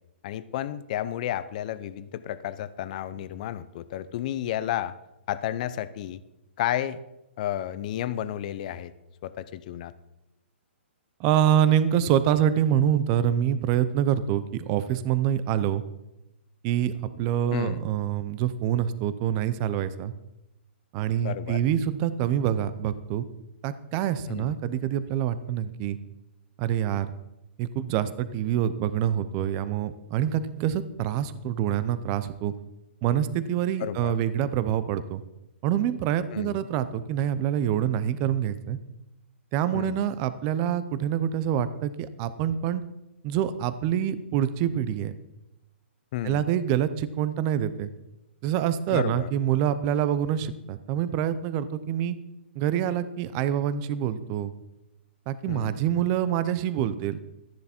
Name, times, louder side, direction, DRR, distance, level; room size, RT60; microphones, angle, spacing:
voice 1, 0.2-4.9 5.3-6.2 6.6-7.0 7.4-8.9 9.2-9.9 17.5-17.9 21.2-21.6 24.3-24.5 33.8-34.1 36.3-36.7 39.7-40.0 46.1-46.5 48.9-49.3 55.5-55.8, left 12 dB, 40° left, 15 dB, 0.6 m, -32 dB
voice 2, 11.2-15.8 16.6-20.1 20.9-23.3 23.6-26.0 26.6-27.1 27.6-32.5 33.0-35.2 35.6-38.8 39.5-42.8 43.2-45.1 46.2-47.9 48.4-52.2 52.6-54.5 55.3-57.2, right 10 dB, 25° right, 14 dB, 0.7 m, -26 dB
13.0 x 10.5 x 4.4 m, 0.92 s
hypercardioid pair, 155°, 7 cm